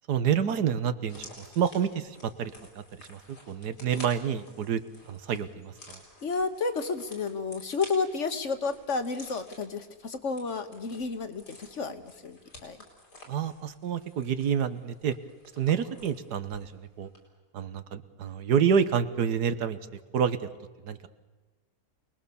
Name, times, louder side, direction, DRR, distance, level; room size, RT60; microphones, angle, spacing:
voice 1, 0.1-2.8 3.1-3.2 3.5-4.8 5.1-6.0 13.3-15.1 15.6-17.1 17.5-19.8 20.1-20.5 20.8-21.0, right 7 dB, 85° right, 12 dB, 1.7 m, -28 dB
sound 1, 1.0-16.7 17.0-17.2, left 1 dB, 90° left, 5.7 m, -51 dB
voice 2, 6.2-12.8, left 4 dB, 50° left, 10 dB, 1.6 m, -31 dB
28.0 x 20.0 x 7.0 m, 1.3 s
omnidirectional pair, 1.7 m